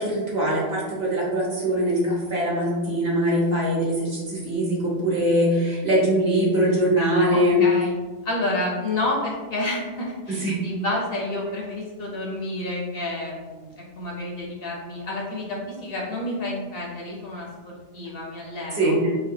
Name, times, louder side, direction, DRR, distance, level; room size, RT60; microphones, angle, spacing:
voice 1, 0.0-7.6 10.3-10.6 18.7-19.0, equal, 55° right, -6 dB, 1.3 m, -22 dB
voice 2, 7.3-7.9 8.2-19.0, left 1 dB, 60° left, -2 dB, 0.8 m, -30 dB
4.2 x 2.2 x 2.7 m, 1.3 s
omnidirectional pair, 1.3 m